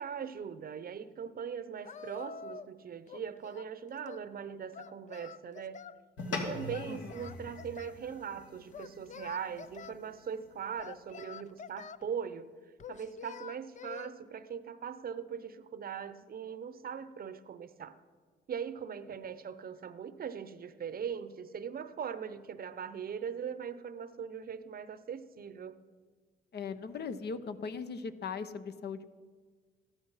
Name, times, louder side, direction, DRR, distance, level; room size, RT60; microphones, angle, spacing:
voice 1, 0.0-5.8 6.3-12.5 12.9-18.0 18.5-25.8, right 7 dB, 50° right, 13 dB, 0.8 m, -40 dB
Singing, 1.8-2.8 3.1-4.3 4.7-6.0 6.7-8.0 8.7-10.0 10.8-12.1 12.8-14.1, left 6 dB, 40° left, 0.5 m, -47 dB
sound 1, 6.2-10.8, left 3 dB, 70° left, 2.7 m, -43 dB
voice 2, 26.5-29.0, left 5 dB, 55° left, 11 dB, 0.9 m, -39 dB
14.0 x 12.5 x 5.6 m, 1.5 s
cardioid pair, 90°, 20 cm